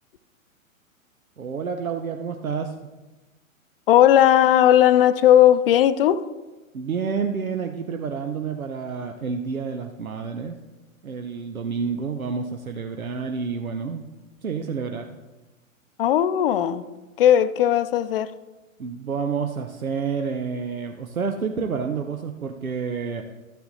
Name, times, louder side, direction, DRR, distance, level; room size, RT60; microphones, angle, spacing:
voice 1, 1.4-2.8 6.7-10.6 11.0-14.0 14.4-15.1 18.8-23.2, right 5 dB, 80° right, 0.8 m, -29 dB
voice 2, 3.9-6.2 16.0-16.8 17.2-18.3, left 11 dB, 45° left, 0.6 m, -17 dB
13.0 x 6.8 x 3.9 m
figure-of-eight pair, 110°, 41 cm